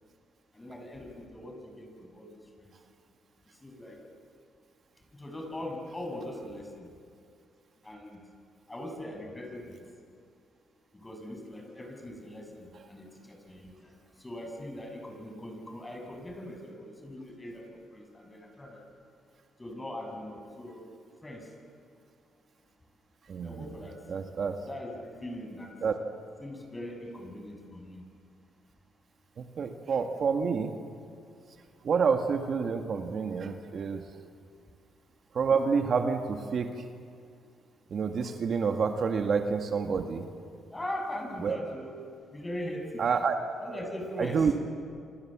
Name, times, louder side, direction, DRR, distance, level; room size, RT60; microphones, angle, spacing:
voice 1, 0.5-2.7 3.5-4.0 5.1-6.9 7.8-8.2 8.7-9.8 10.9-17.6 17.9-18.8 19.6-20.9 21.2-21.5 23.4-24.0 24.6-25.7 26.4-28.0 40.7-42.0 42.3-43.0 43.6-44.6, left 1 dB, 15° left, 3 dB, 6.5 m, -41 dB
voice 2, 23.3-23.6 24.1-24.6 25.8-25.9 29.4-30.7 31.8-34.0 35.3-36.7 37.9-40.3 41.4-41.6 43.0-43.4 44.2-44.5, right 5 dB, 55° right, 5 dB, 1.9 m, -28 dB
27.0 x 26.5 x 7.6 m, 2.4 s
cardioid pair, 90°, 0 cm